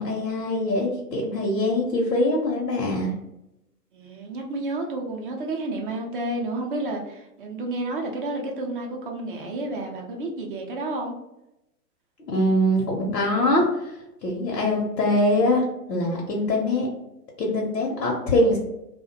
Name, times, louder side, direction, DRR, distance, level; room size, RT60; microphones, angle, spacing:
voice 1, 0.0-3.1 12.3-16.9 17.4-18.6, left 1 dB, 80° left, -1 dB, 0.7 m, -23 dB
voice 2, 3.9-11.1, right 2 dB, 35° right, 1 dB, 0.4 m, -30 dB
2.4 x 2.1 x 2.7 m, 0.89 s
figure-of-eight pair, 110°, 49 cm